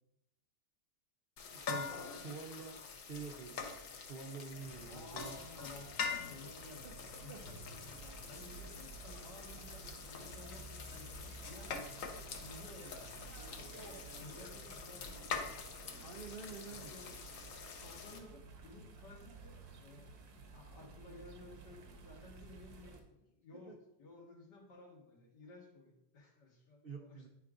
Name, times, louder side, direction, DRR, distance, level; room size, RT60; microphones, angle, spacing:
sound 1, 1.4-18.2, left 5 dB, 60° left, 1.0 m, -45 dB
voice 1, 1.5-1.9 2.2-3.6 4.0-5.4 7.3-7.4 16.0-16.9 23.7-23.8 26.8-27.3, right 5 dB, 85° right, 2 dB, 0.5 m, -47 dB
sound 2, 4.6-23.0, right 4 dB, 65° right, 1.3 m, -54 dB
voice 2, 4.9-6.0 6.3-11.8 12.4-16.0 16.7-17.2 17.8-20.2 20.5-23.7 24.0-27.2, left 2 dB, 80° left, -1 dB, 2.1 m, -55 dB
10.0 x 4.9 x 2.5 m, 0.85 s
omnidirectional pair, 1.8 m